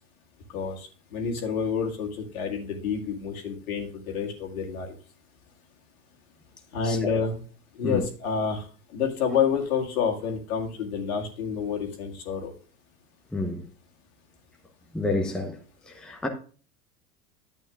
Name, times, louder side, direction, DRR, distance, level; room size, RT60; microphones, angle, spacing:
voice 1, 0.5-5.0 6.7-7.4 7.8-8.7 8.9-12.5, left 6 dB, 65° left, 2.1 m, -28 dB
voice 2, 13.3-13.6 14.9-15.6 15.9-16.3, left 2 dB, ahead, 0.8 m, -28 dB
11.0 x 8.3 x 2.4 m
figure-of-eight pair, 90°, 47 cm